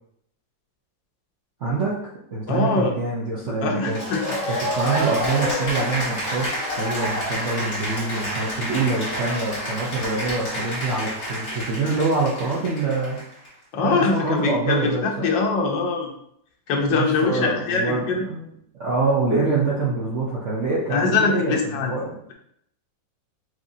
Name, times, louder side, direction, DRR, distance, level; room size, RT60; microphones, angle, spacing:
voice 1, 1.6-2.0 2.3-4.0 4.5-13.2 13.8-15.3 16.9-18.5 18.8-22.2, right 3 dB, 50° right, -6 dB, 1.0 m, -25 dB
voice 2, 2.5-2.9 3.6-4.6 13.7-16.1 16.7-18.3 20.9-21.9, left 4 dB, 75° left, 2 dB, 1.5 m, -23 dB
Cheering / Applause, 3.9-13.5, equal, 50° left, 2.1 m, -28 dB
6.3 x 2.7 x 2.7 m, 0.71 s
omnidirectional pair, 2.1 m